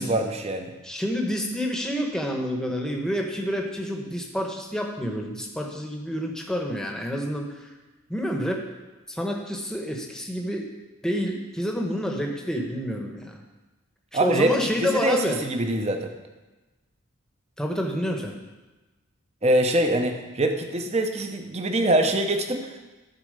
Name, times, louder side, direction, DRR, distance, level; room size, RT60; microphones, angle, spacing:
voice 1, 0.0-0.7 14.1-16.1 19.4-22.8, right 1 dB, 30° right, 5 dB, 0.8 m, -24 dB
voice 2, 0.8-7.7 8.1-8.6 9.1-10.7 11.0-13.4 14.1-15.4 17.6-18.4, equal, 5° left, 1 dB, 1.0 m, -28 dB
12.5 x 4.5 x 6.6 m, 1.2 s
head